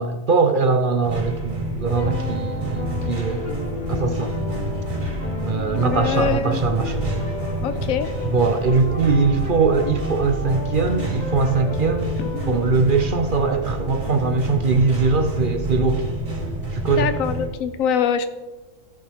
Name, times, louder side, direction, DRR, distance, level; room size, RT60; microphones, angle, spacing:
voice 1, 0.0-3.6 3.9-4.3 5.4-7.0 8.3-12.2 12.5-16.1 16.7-17.1, right 4 dB, 50° right, 6 dB, 0.7 m, -21 dB
sound 1, 1.0-17.5, right 1 dB, 85° right, 3.6 m, -28 dB
sound 2, 1.8-12.8, left 3 dB, 35° left, 1.3 m, -32 dB
voice 2, 5.7-6.6 7.6-8.1 12.3-12.6 16.9-18.3, left 7 dB, 85° left, 11 dB, 1.1 m, -24 dB
16.0 x 5.5 x 3.5 m, 1.2 s
omnidirectional pair, 1.4 m